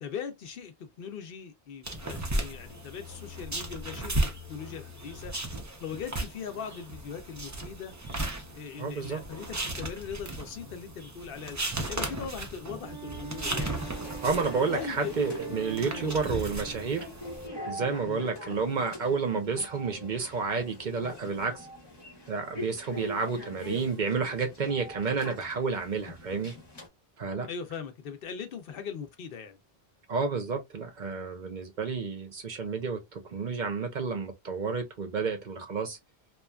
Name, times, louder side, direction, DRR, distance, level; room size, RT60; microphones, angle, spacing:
voice 1, 0.0-5.3 5.8-7.9 8.5-11.6 11.9-13.8 14.5-15.1 15.8-16.4 18.0-18.2 27.4-29.6, left 7 dB, 65° left, 0.7 m, -40 dB
sound 1, 1.8-17.5, right 1 dB, 30° right, 0.3 m, -36 dB
voice 2, 8.8-9.2 14.2-17.0 17.7-21.7 22.3-26.5 27.2-27.5 30.1-36.0, right 5 dB, 50° right, 0.7 m, -30 dB
Wind instrument woodwind instrument, 12.8-17.1, right 9 dB, 5° right, 1.0 m, -44 dB
sound 2, 13.5-26.9, left 1 dB, 25° left, 0.7 m, -43 dB
2.9 x 2.3 x 2.2 m
omnidirectional pair, 1.1 m